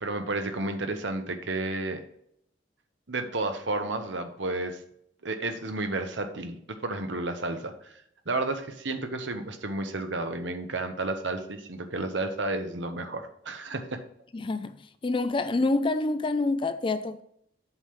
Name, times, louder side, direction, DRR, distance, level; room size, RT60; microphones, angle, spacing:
voice 1, 0.0-2.0 3.1-4.8 5.2-8.0 8.3-14.0, right 2 dB, 75° right, 1.1 m, -32 dB
voice 2, 14.3-14.8 15.0-17.2, left 2 dB, 25° left, 0.4 m, -27 dB
8.0 x 3.7 x 5.9 m
head